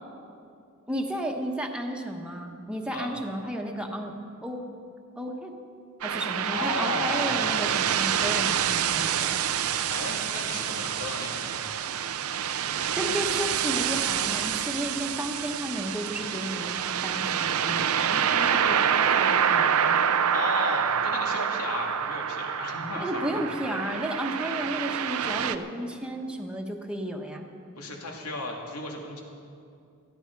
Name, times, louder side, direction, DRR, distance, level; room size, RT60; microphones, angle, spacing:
voice 1, 0.9-4.7 5.2-5.6 6.0-9.3 12.9-20.1 23.0-27.5, equal, 5° right, 1 dB, 1.1 m, -33 dB
sound 1, 6.0-25.6, right 8 dB, 65° right, 0.6 m, -27 dB
voice 2, 6.5-7.5 9.9-11.6 20.3-23.4 27.8-29.2, left 2 dB, 80° left, 0 dB, 2.5 m, -34 dB
18.0 x 14.5 x 4.7 m, 2.4 s
head